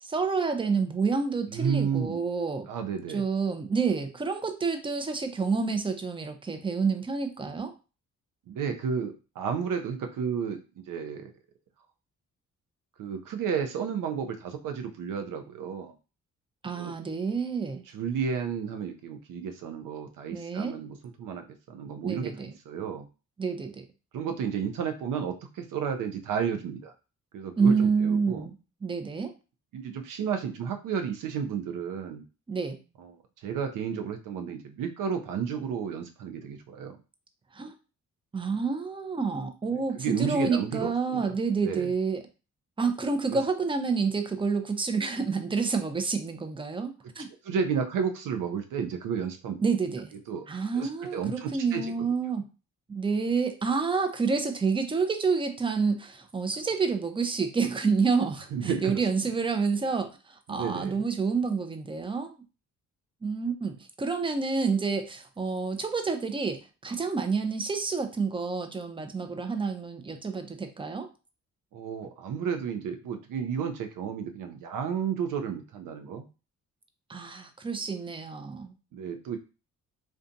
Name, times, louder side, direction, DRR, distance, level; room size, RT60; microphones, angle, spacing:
voice 1, 0.0-2.7 3.1-7.7 16.6-17.8 20.3-20.7 22.0-22.5 23.4-23.8 27.6-28.5 28.8-29.3 32.5-32.8 37.5-37.7 38.3-42.2 42.8-47.3 49.6-50.1 50.5-52.4 52.9-62.3 63.2-71.1 77.1-78.7, right 5 dB, 15° right, 7 dB, 0.4 m, -28 dB
voice 2, 1.5-2.2 2.7-3.2 8.5-11.3 13.0-15.9 16.7-16.9 17.9-23.0 24.1-26.9 27.3-28.5 29.7-32.2 33.0-33.1 33.4-37.0 39.7-41.3 41.6-41.9 43.3-43.4 47.4-49.6 50.3-50.5 50.7-51.9 58.5-59.1 60.5-61.0 71.7-76.3 78.9-79.4, right 7 dB, 75° right, 6 dB, 0.5 m, -32 dB
2.5 x 2.2 x 2.5 m, 0.32 s
cardioid pair, 65°, 32 cm